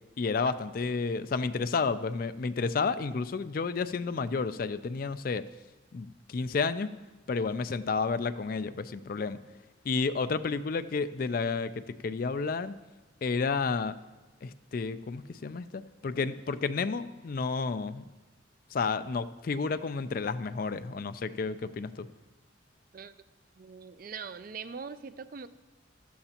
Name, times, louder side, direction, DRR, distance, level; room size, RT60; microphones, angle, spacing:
voice 1, 0.2-5.5 5.9-6.9 7.3-9.4 9.9-12.7 13.2-13.9 14.4-18.0 18.7-22.1, left 4 dB, 45° left, 12 dB, 0.4 m, -31 dB
voice 2, 23.6-25.5, right 5 dB, 45° right, 13 dB, 0.4 m, -42 dB
15.5 x 13.0 x 2.9 m, 1.2 s
head